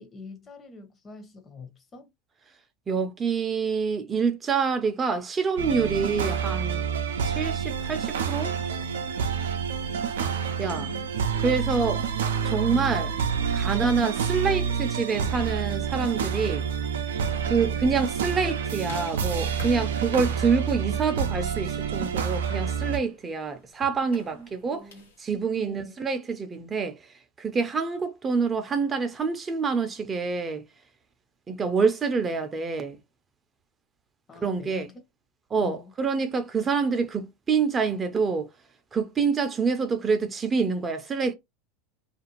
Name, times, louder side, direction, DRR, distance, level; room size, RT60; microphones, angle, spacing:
voice 1, 0.0-2.1 9.9-11.1 11.8-11.9 12.6-13.1 17.4-17.8 24.3-25.1 25.5-25.9 34.3-35.0 35.6-35.9, left 3 dB, 30° left, 0.9 m, -45 dB
voice 2, 2.9-6.9 7.2-8.6 10.6-10.9 11.4-12.0 12.4-13.1 13.5-16.7 17.5-24.8 25.2-30.6 31.5-33.0 34.4-34.9 35.5-38.5 38.9-41.3, right 5 dB, 25° right, 0.5 m, -26 dB
sound 1, 5.6-23.0, right 7 dB, 80° right, 0.4 m, -28 dB
sound 2, 16.3-25.3, left 3 dB, 90° left, 1.1 m, -47 dB
2.5 x 2.4 x 2.9 m
hypercardioid pair, 90°, 0 cm